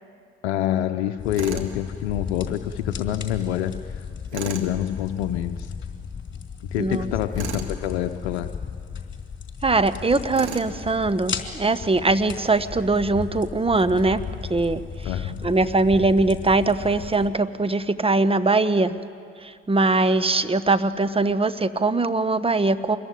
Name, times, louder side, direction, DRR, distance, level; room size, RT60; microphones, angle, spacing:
voice 1, 0.4-4.0 4.3-5.7 6.7-8.5 15.0-15.4, left 12 dB, 75° left, 9 dB, 0.8 m, -27 dB
sound 1, 1.2-17.3, left 6 dB, 35° left, 3.7 m, -35 dB
Tools, 1.4-1.7 4.3-4.7 7.3-7.7 10.3-10.7, right 6 dB, 85° right, 1.9 m, -34 dB
voice 2, 6.8-7.1 9.6-14.2 14.5-15.1 15.4-19.0 19.4-23.0, right 3 dB, 15° right, 12 dB, 1.2 m, -21 dB
25.5 x 21.5 x 9.4 m, 2.3 s
hypercardioid pair, 55°, 33 cm